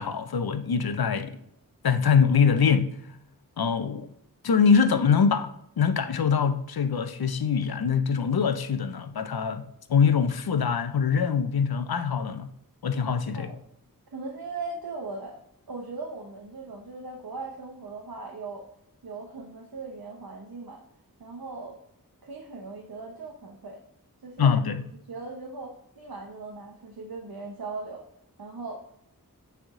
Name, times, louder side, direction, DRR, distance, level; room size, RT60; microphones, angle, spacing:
voice 1, 0.0-1.4 1.8-2.9 3.6-4.1 4.4-5.5 5.8-12.5 12.8-13.5 24.4-24.8, left 6 dB, 90° left, 0.6 m, -23 dB
voice 2, 14.1-15.4 15.7-18.7 19.0-20.8 21.2-21.8 22.2-23.8 24.2-24.5 25.1-28.0 28.4-28.8, right 3 dB, 80° right, 1.0 m, -39 dB
8.8 x 3.5 x 3.7 m
wide cardioid pair, 70°, 36 cm